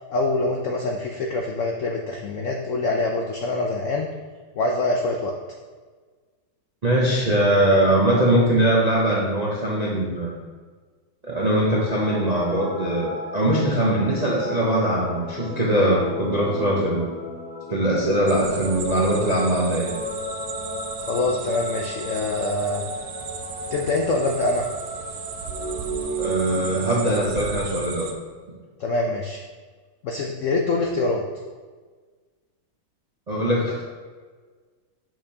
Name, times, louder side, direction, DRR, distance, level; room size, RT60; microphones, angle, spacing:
voice 1, 0.1-4.1 4.6-5.3 21.1-22.8 23.7-24.7 28.8-29.4 30.0-31.2, left 2 dB, 80° left, 1 dB, 0.7 m, -24 dB
voice 2, 6.8-10.4 11.2-17.1 17.7-19.9 26.2-28.1 33.3-33.8, right 1 dB, 50° right, -4 dB, 0.5 m, -21 dB
sound 1, 11.8-27.3, left 1 dB, 45° left, 1.6 m, -34 dB
sound 2, 18.3-28.1, right 7 dB, 85° right, 1.4 m, -36 dB
6.6 x 5.9 x 2.8 m, 1.4 s
omnidirectional pair, 2.0 m